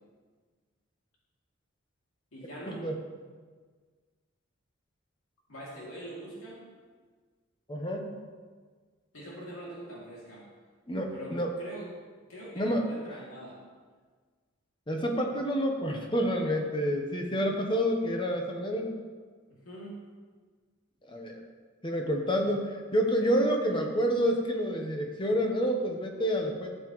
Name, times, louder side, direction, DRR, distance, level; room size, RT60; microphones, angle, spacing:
voice 1, 2.3-2.8 5.5-6.6 9.1-10.5 11.1-11.9 12.3-13.6 19.5-20.0, right 1 dB, 80° left, -5 dB, 2.8 m, -43 dB
voice 2, 7.7-8.1 10.9-11.5 12.6-13.1 14.9-18.9 21.0-21.4 21.8-26.7, equal, 20° left, 2 dB, 1.0 m, -28 dB
13.0 x 7.8 x 3.2 m, 1.5 s
head